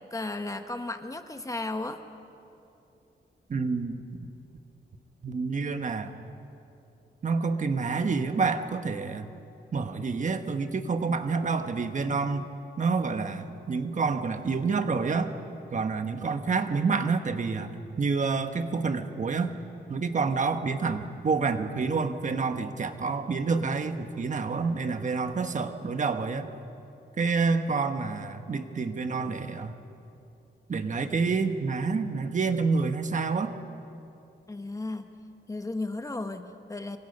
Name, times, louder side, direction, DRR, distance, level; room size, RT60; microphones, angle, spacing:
voice 1, 0.1-2.0 34.5-35.1 35.5-37.0, left 2 dB, 20° left, 7 dB, 1.1 m, -34 dB
voice 2, 3.5-3.9 5.2-6.2 7.2-9.3 9.7-12.5 12.8-15.3 15.7-19.5 19.9-26.5 27.2-29.8 30.7-33.5, right 4 dB, 45° right, 7 dB, 1.2 m, -28 dB
25.5 x 25.5 x 5.4 m, 2.7 s
wide cardioid pair, 130°, 18 cm